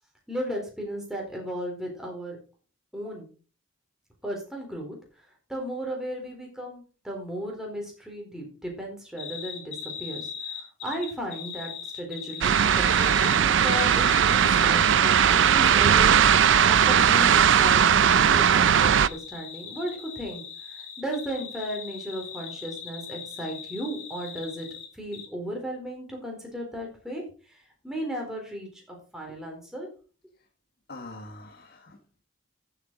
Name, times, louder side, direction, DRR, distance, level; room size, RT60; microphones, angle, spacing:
voice 1, 0.3-2.4 2.9-3.3 4.2-5.0 5.5-24.7 24.9-29.9, equal, 5° right, 0 dB, 4.4 m, -35 dB
sound 1, 9.2-24.9 25.1-25.3, left 7 dB, 75° left, 2.9 m, -39 dB
sound 2, 12.4-19.1, right 8 dB, 65° right, 0.5 m, -19 dB
voice 2, 30.9-32.2, left 2 dB, 55° left, 2 dB, 1.6 m, -44 dB
14.5 x 8.0 x 4.1 m, 0.37 s
head